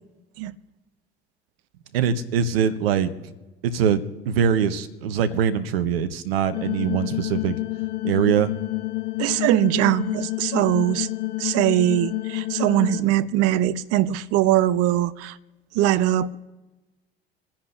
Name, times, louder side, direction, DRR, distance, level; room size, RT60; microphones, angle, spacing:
voice 1, 1.9-3.1 3.6-7.5 8.0-8.5, right 7 dB, 75° right, 1.0 m, -22 dB
sound 1, 6.5-13.0, left 21 dB, 65° left, 0.8 m, -29 dB
voice 2, 9.2-11.1 11.4-15.4 15.7-16.4, right 13 dB, 55° right, 0.7 m, -21 dB
28.0 x 10.0 x 3.3 m
figure-of-eight pair, 65°, 30 cm